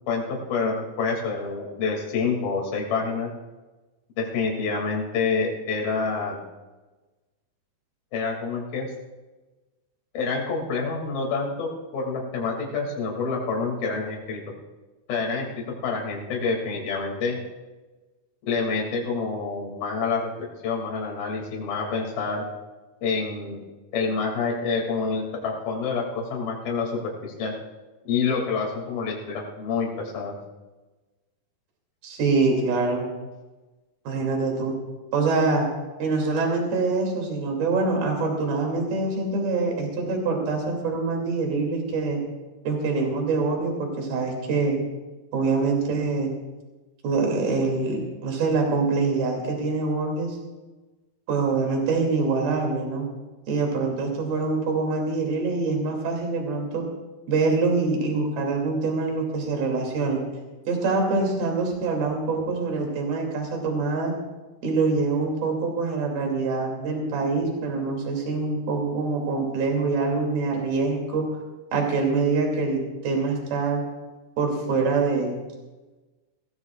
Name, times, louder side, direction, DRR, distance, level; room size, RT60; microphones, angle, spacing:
voice 1, 0.1-3.3 4.2-6.4 8.1-8.9 10.1-14.4 15.1-17.4 18.5-22.5 23.0-23.6 23.9-27.5 28.1-30.3, left 4 dB, 60° left, -1 dB, 4.2 m, -27 dB
voice 2, 32.0-33.1 34.1-34.8 35.1-35.7 36.0-42.2 42.6-44.9 45.3-46.3 47.0-50.4 51.3-53.1 53.5-56.8 57.3-60.2 60.7-64.1 64.6-71.3 71.7-73.8 74.4-75.4, right 3 dB, 65° right, 1 dB, 4.5 m, -25 dB
22.0 x 17.5 x 2.4 m, 1.2 s
omnidirectional pair, 4.8 m